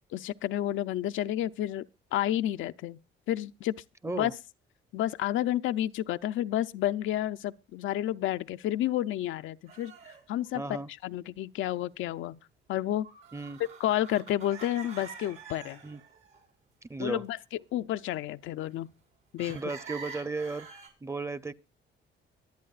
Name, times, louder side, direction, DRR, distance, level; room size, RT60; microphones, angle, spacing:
voice 1, 0.1-1.9 2.1-3.0 3.3-3.7 4.1-4.3 4.9-12.4 12.7-13.1 13.8-15.8 17.0-18.9 19.3-19.7, left 13 dB, 80° left, 0.5 m, -31 dB
sound 1, 9.7-10.5 13.0-16.4 19.4-20.9, right 6 dB, 80° right, 4.8 m, -47 dB
voice 2, 10.5-10.9 13.3-13.6 15.8-16.0 16.9-17.2 19.4-21.5, right 3 dB, 15° right, 0.7 m, -35 dB
23.5 x 8.5 x 2.4 m
cardioid pair, 90°, 20 cm